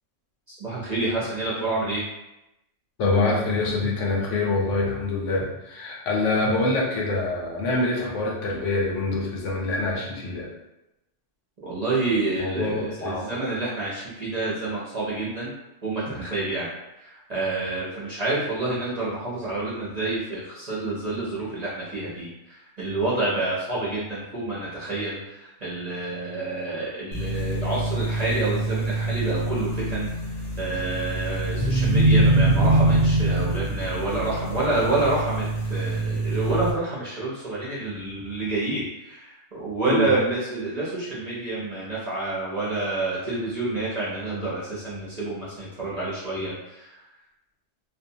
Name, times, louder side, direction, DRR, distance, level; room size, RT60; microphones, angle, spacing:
voice 1, 0.5-2.1 11.6-15.5 15.8-16.7 17.0-30.1 30.6-47.0, right 2 dB, 45° right, -7 dB, 0.6 m, -28 dB
voice 2, 3.0-10.5 12.4-13.3 39.9-40.1, left 2 dB, 80° left, -2 dB, 1.0 m, -25 dB
sound 1, 27.1-36.7, right 2 dB, 45° left, 0.7 m, -24 dB
2.6 x 2.2 x 2.7 m, 0.92 s
omnidirectional pair, 1.3 m